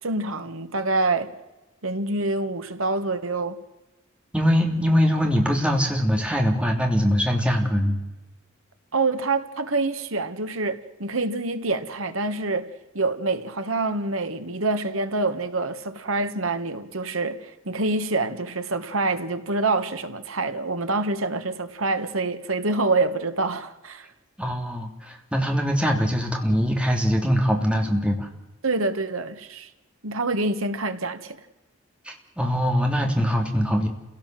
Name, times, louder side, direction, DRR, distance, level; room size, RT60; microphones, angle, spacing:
voice 1, 0.0-1.3 1.8-3.6 8.9-24.1 28.6-29.7 30.0-31.4, right 3 dB, 75° right, 1.8 m, -26 dB
voice 2, 4.3-8.0 24.4-28.3 32.0-33.9, equal, 5° right, 3.1 m, -22 dB
28.0 x 17.0 x 7.8 m
head